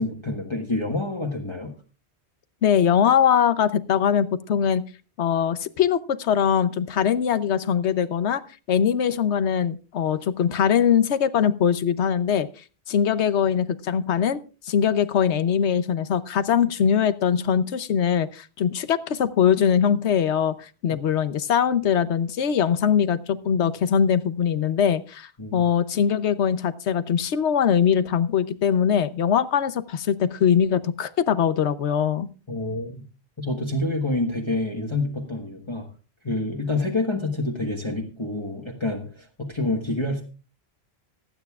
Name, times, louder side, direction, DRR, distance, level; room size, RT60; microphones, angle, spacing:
voice 1, 0.0-1.7 20.9-21.0 25.4-25.6 32.5-33.0 33.4-35.9 36.2-40.2, left 2 dB, 25° left, 0 dB, 1.4 m, -27 dB
voice 2, 2.6-4.8 5.2-8.4 8.7-12.5 12.9-14.4 14.7-32.3, left 8 dB, 90° left, 14 dB, 1.1 m, -22 dB
26.0 x 9.1 x 2.4 m, 0.33 s
omnidirectional pair, 1.1 m